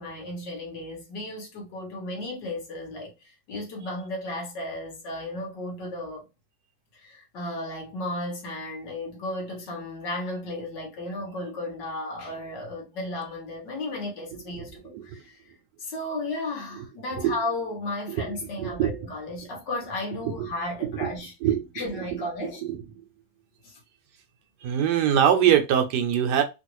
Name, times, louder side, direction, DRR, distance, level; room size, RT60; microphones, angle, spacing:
voice 1, 0.0-6.2 6.9-15.5 15.8-21.3 21.8-22.6 23.6-23.8, left 2 dB, 60° left, 1.8 m, -34 dB
voice 2, 14.3-14.7 14.9-15.2 16.8-16.9 17.2-17.4 18.1-19.0 20.2-20.5 20.8-21.1 21.4-23.1 24.6-26.4, right 9 dB, 70° right, 1.1 m, -25 dB
3.8 x 2.4 x 3.0 m
omnidirectional pair, 2.2 m